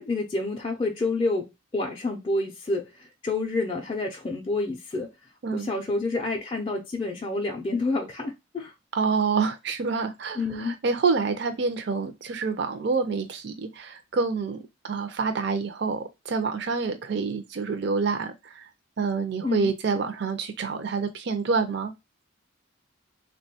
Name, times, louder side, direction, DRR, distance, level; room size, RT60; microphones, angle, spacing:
voice 1, 0.0-5.1 5.5-8.7 10.4-10.7 19.4-19.7, left 2 dB, 25° left, 0.4 m, -28 dB
voice 2, 8.9-18.6 19.0-21.9, right 4 dB, 55° right, 0.4 m, -27 dB
3.4 x 2.2 x 2.6 m
head